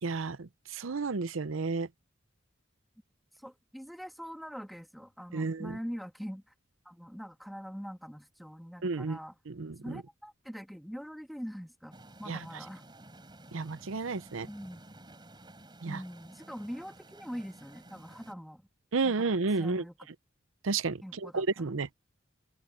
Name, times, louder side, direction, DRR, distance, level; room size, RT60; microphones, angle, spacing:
voice 1, 0.0-1.9 5.3-5.8 8.8-9.2 9.5-10.0 12.3-12.4 13.5-14.5 15.8-16.0 18.9-19.8 20.6-21.9, right 4 dB, 85° right, 0.7 m, -32 dB
voice 2, 3.3-6.5 6.8-9.3 9.8-11.9 12.2-12.8 14.5-14.8 15.9-18.7 19.0-19.3 19.6-20.1 21.0-21.4, equal, ahead, 2.2 m, -43 dB
sound 1, 11.9-18.3, right 1 dB, 25° right, 3.9 m, -53 dB
open air
head